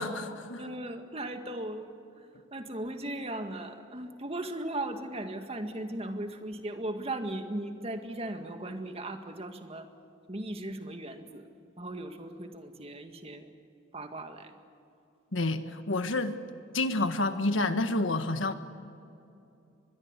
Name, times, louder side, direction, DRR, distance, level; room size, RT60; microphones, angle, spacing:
voice 1, 0.0-0.6 15.3-16.3 16.7-18.5, left 2 dB, 75° left, 9 dB, 1.6 m, -29 dB
voice 2, 0.6-1.9 2.5-9.9 10.3-11.4 11.8-13.5 13.9-14.5, right 1 dB, 30° right, 6 dB, 1.9 m, -37 dB
25.0 x 21.5 x 8.3 m, 2.7 s
head